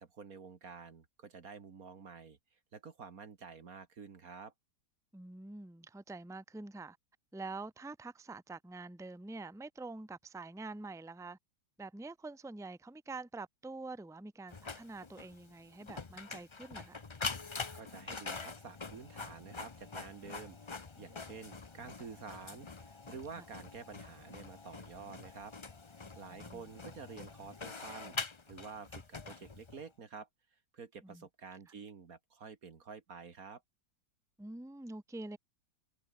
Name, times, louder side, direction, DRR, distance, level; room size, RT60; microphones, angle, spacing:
voice 1, 0.0-2.4 2.7-4.5 17.7-25.5 26.1-28.2 28.5-30.3 30.7-33.6, right 5 dB, 50° right, 2.0 m, -49 dB
voice 2, 5.1-7.0 7.3-11.4 11.8-17.0 23.4-23.5 26.3-26.6 31.0-31.2 34.4-35.4, right 3 dB, ahead, 1.4 m, -46 dB
Printer, 14.5-29.9, left 4 dB, 35° left, 0.4 m, -45 dB
omnidirectional pair, 2.0 m